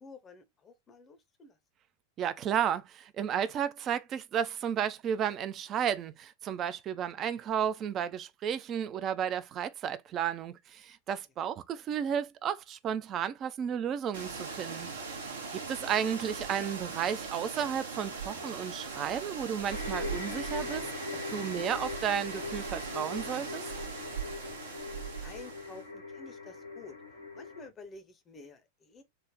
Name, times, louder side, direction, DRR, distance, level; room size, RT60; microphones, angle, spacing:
voice 1, 0.0-1.6 11.4-11.5 15.6-15.9 24.9-27.0 27.3-29.0, left 3 dB, 25° left, 0.6 m, -51 dB
voice 2, 2.2-14.9 15.5-20.8 21.3-23.6, right 9 dB, 30° right, 0.3 m, -33 dB
sound 1, 14.1-25.8, right 5 dB, 65° right, 0.8 m, -40 dB
sound 2, 19.7-27.7, left 4 dB, 85° right, 1.2 m, -41 dB
3.3 x 2.0 x 3.5 m
figure-of-eight pair, 90°, 0 cm